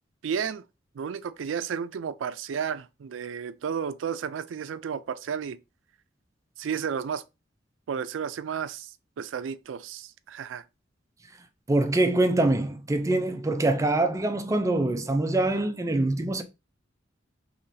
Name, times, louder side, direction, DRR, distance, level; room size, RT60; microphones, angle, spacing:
voice 1, 0.2-0.6 0.9-5.6 6.6-7.2 7.9-10.7, right 7 dB, 85° right, 0.4 m, -32 dB
voice 2, 11.7-16.4, right 2 dB, 15° right, 0.4 m, -24 dB
5.6 x 3.0 x 2.6 m
head